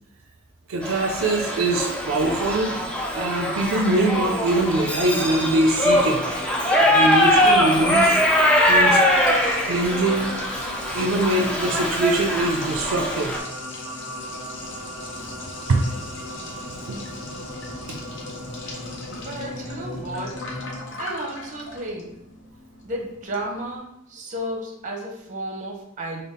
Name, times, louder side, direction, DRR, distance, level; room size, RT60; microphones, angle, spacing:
voice 1, 0.7-2.7 3.1-6.2 6.8-8.2 8.7-9.0 9.7-10.3 10.9-13.3 15.7-15.8 16.6-17.0 17.9-18.0, right 2 dB, 70° right, 2 dB, 0.4 m, -23 dB
Shout / Livestock farm animals working animals, 0.8-13.4, left 1 dB, 5° left, 0.3 m, -22 dB
sound 1, 5.1-20.8, equal, 30° left, 0.9 m, -36 dB
Liquid, 8.6-23.8, left 2 dB, 60° left, 0.7 m, -41 dB
voice 2, 19.2-20.4 21.0-22.2 22.8-26.2, right 1 dB, 35° right, 1 dB, 0.7 m, -33 dB
3.4 x 2.3 x 3.6 m, 0.78 s
head